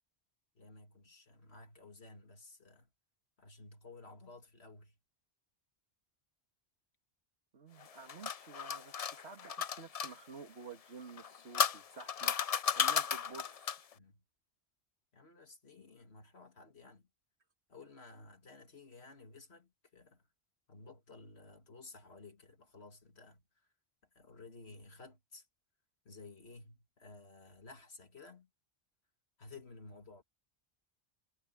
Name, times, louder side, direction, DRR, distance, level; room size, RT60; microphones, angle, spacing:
voice 1, 0.5-2.9 3.4-5.0 13.9-14.2 15.1-17.1 17.7-20.3 20.7-23.7 24.1-25.5 26.0-28.5 29.4-30.2, left 3 dB, 75° left, 2.7 m, -55 dB
voice 2, 7.5-12.4 12.8-13.9, right 5 dB, 80° right, 2.3 m, -51 dB
sound 1, 7.8-10.1 11.1-13.9, left 7 dB, 45° left, 0.5 m, -34 dB
omnidirectional pair, 1.1 m